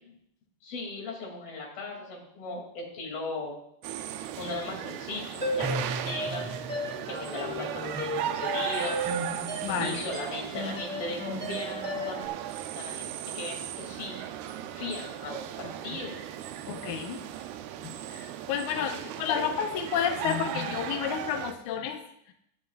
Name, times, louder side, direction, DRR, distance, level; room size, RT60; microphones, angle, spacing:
voice 1, 0.6-3.6 4.4-6.5 7.0-9.0 9.8-12.2 12.8-14.2 14.7-16.2 18.7-19.5, left 3 dB, 60° left, 0 dB, 4.5 m, -37 dB
sound 1, 3.8-21.5, right 11 dB, 80° right, 2.5 m, -37 dB
sound 2, 5.4-12.3, equal, 5° left, 1.2 m, -34 dB
voice 2, 9.6-10.0 16.7-17.2 17.8-22.0 22.3-22.4, left 9 dB, 75° left, 4 dB, 1.8 m, -31 dB
21.0 x 9.9 x 2.5 m, 0.75 s
omnidirectional pair, 4.8 m